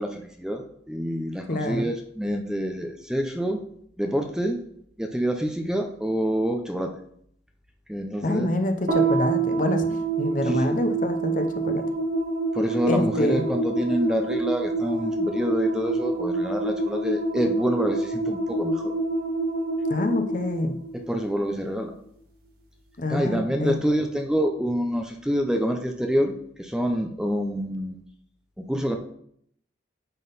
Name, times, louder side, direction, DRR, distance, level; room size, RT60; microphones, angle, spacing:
voice 1, 0.0-3.6 4.0-4.6 5.0-6.9 7.9-8.5 10.5-10.8 12.5-18.9 21.1-21.9 23.1-28.0 28.6-29.0, equal, 5° right, 4 dB, 0.5 m, -27 dB
voice 2, 1.5-1.9 8.2-11.8 12.9-13.5 19.9-20.8 23.0-23.8, left 1 dB, 45° left, 7 dB, 0.7 m, -26 dB
sound 1, 8.9-21.4, right 3 dB, 55° right, 1.8 m, -27 dB
9.2 x 3.8 x 4.0 m, 0.67 s
head